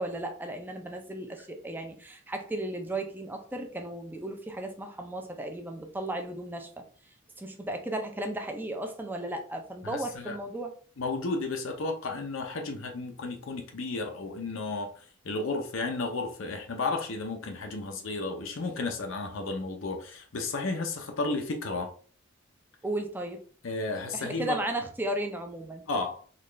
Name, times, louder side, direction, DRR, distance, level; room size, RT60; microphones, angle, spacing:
voice 1, 0.0-6.8 7.4-10.7 22.8-23.4 24.1-25.9, right 1 dB, 10° right, 3 dB, 0.5 m, -35 dB
voice 2, 9.8-10.4 11.0-14.9 15.2-21.9 23.6-24.6 25.9-26.2, left 3 dB, 70° left, 4 dB, 0.6 m, -33 dB
3.9 x 2.4 x 3.2 m, 0.43 s
head